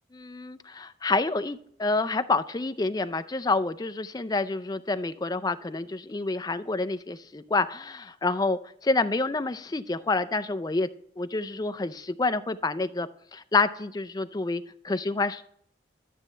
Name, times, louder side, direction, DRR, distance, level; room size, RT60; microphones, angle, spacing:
voice 1, 0.1-10.9 11.2-15.4, left 3 dB, 20° left, 12 dB, 0.4 m, -28 dB
12.0 x 7.2 x 3.3 m, 0.68 s
head